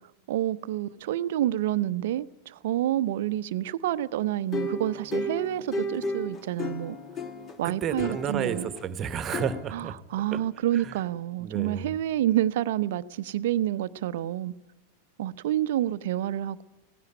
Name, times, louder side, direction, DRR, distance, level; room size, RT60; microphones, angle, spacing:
voice 1, 0.3-7.0 7.6-8.7 9.7-14.5 15.2-16.6, right 12 dB, 55° right, 0.7 m, -28 dB
String Fingers, 4.5-7.6 8.0-8.8 9.3-9.6, left 2 dB, 25° left, 1.3 m, -33 dB
voice 2, 7.6-10.0 10.3-10.4 10.7-11.0 11.4-12.0, right 8 dB, 30° right, 1.2 m, -32 dB
17.5 x 16.5 x 9.6 m
figure-of-eight pair, 90°, 0 cm